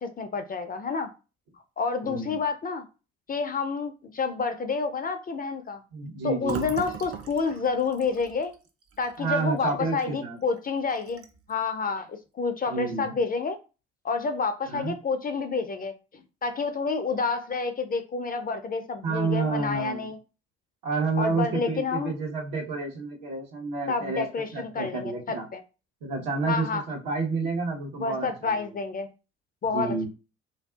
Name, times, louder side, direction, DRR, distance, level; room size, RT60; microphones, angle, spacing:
voice 1, 0.0-1.1 1.8-2.8 3.3-5.8 6.2-8.5 9.0-11.2 11.5-13.6 14.0-20.2 21.2-22.1 23.9-25.6 26.5-26.8 28.0-29.1 29.6-30.1, left 4 dB, 25° left, 8 dB, 0.4 m, -29 dB
voice 2, 2.0-2.4 5.9-6.7 9.2-10.4 12.7-13.1 14.7-14.9 19.0-20.1 20.8-24.2 24.5-25.5 26.0-28.6 29.7-30.1, right 4 dB, 70° right, 1 dB, 0.9 m, -29 dB
Fill (with liquid), 6.4-10.1 10.4-10.6 10.9-11.5, right 6 dB, 45° right, 0.6 m, -41 dB
2.6 x 2.3 x 2.3 m, 0.32 s
hypercardioid pair, 55°, 34 cm